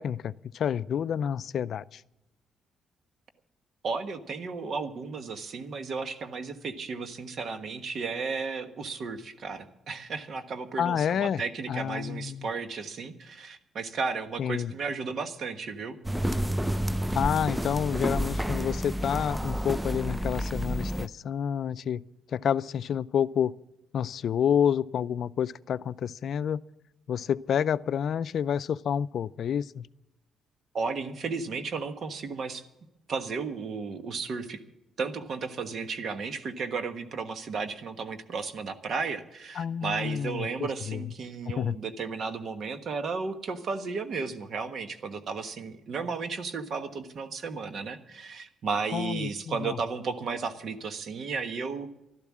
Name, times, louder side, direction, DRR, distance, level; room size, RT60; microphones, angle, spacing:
voice 1, 0.0-2.0 10.8-11.4 11.7-12.5 14.4-14.7 17.1-22.0 22.3-23.5 23.9-26.6 27.1-29.9 39.6-40.5 40.9-41.0 41.5-41.8 48.9-49.8, left 8 dB, 65° left, 17 dB, 0.4 m, -29 dB
voice 2, 3.8-16.0 30.7-32.6 33.1-34.6 35.0-51.9, right 4 dB, 55° right, 9 dB, 1.3 m, -34 dB
sound 1, 16.0-21.1, equal, 5° right, 0.5 m, -30 dB
12.5 x 12.0 x 7.4 m, 0.93 s
cardioid pair, 90°, 0 cm